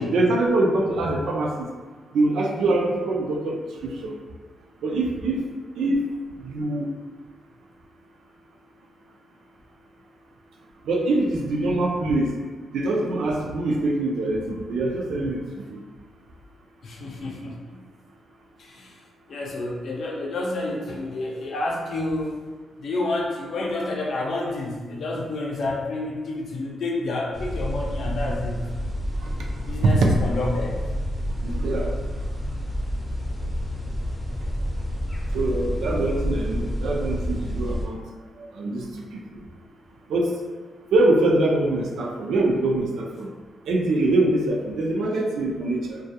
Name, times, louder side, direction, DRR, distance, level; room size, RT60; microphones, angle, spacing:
voice 1, 0.0-1.5 2.1-4.2 4.8-5.4 5.8-6.0 6.4-6.9 10.9-12.3 12.7-15.8 29.8-30.1 31.4-32.0 35.3-38.0 38.5-38.9 39.1-39.2 40.1-40.3 40.9-43.3 43.7-46.0, right 2 dB, 85° right, 0 dB, 0.4 m, -23 dB
voice 2, 16.8-17.8 18.6-19.0 19.3-22.4 22.8-28.6 29.6-30.8, left 2 dB, 65° left, -2 dB, 0.5 m, -29 dB
sound 1, 27.3-37.8, equal, 15° left, 0.6 m, -29 dB
2.2 x 2.2 x 2.8 m, 1.4 s
cardioid pair, 105°, 0 cm